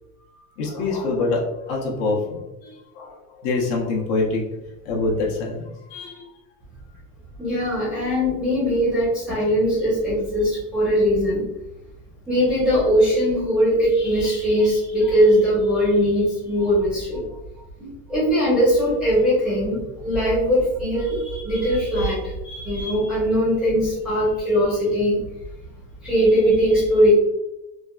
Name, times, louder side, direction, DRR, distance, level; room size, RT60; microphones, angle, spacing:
voice 1, 0.3-4.4 4.8-6.3 15.0-15.1 16.6-16.7 17.3-17.7, left 3 dB, 60° left, -1 dB, 0.8 m, -26 dB
voice 2, 7.4-11.4 12.3-17.3 17.8-25.2 26.0-27.1, equal, ahead, -10 dB, 0.6 m, -20 dB
3.3 x 2.3 x 2.2 m, 0.95 s
cardioid pair, 175°, 45 cm